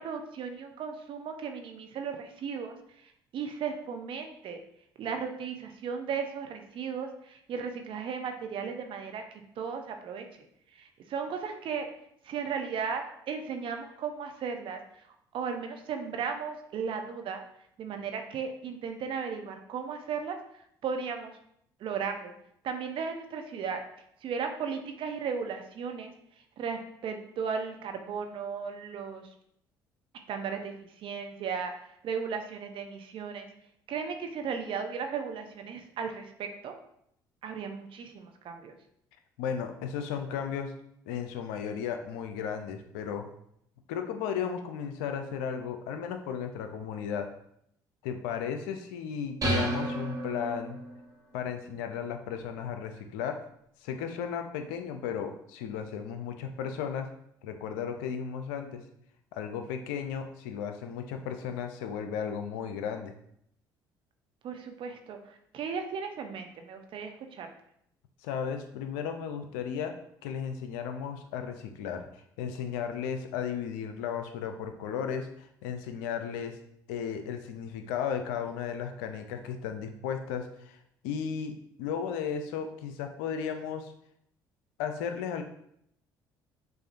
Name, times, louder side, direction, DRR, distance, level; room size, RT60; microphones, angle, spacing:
voice 1, 0.0-4.6 5.0-11.9 12.2-17.4 17.8-21.4 21.8-22.3 22.6-23.8 24.2-29.3 30.3-33.5 33.9-36.7 37.4-38.8 64.4-67.5, right 6 dB, 60° right, 5 dB, 0.6 m, -36 dB
voice 2, 39.4-40.7 41.1-43.3 43.9-47.3 48.0-50.8 51.3-53.4 53.8-57.1 57.4-58.8 59.3-63.1 68.2-69.9 70.2-72.0 72.4-76.6 76.9-80.8 81.0-83.9 84.8-85.4, left 7 dB, 80° left, 7 dB, 0.4 m, -35 dB
sound 1, 49.4-51.0, right 1 dB, 35° right, 1.1 m, -31 dB
6.1 x 2.5 x 2.5 m, 0.72 s
hypercardioid pair, 60°, 10 cm